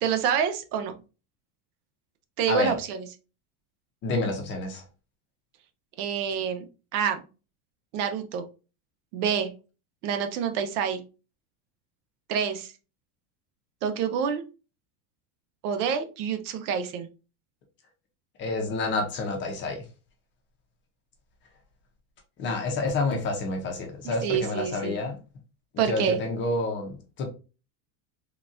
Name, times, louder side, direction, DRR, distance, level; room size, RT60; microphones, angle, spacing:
voice 1, 0.0-0.9 2.4-3.1 6.0-6.7 6.9-7.2 7.9-8.5 9.1-9.5 10.0-11.0 12.3-12.7 13.8-14.4 15.6-17.1 24.0-25.0 25.8-26.2, right 7 dB, 70° right, 8 dB, 0.7 m, -27 dB
voice 2, 4.0-4.8 18.4-19.8 22.4-25.2 25.8-27.3, left 3 dB, 25° left, 3 dB, 0.6 m, -29 dB
3.9 x 2.3 x 2.5 m, 0.32 s
supercardioid pair, 155°, 49 cm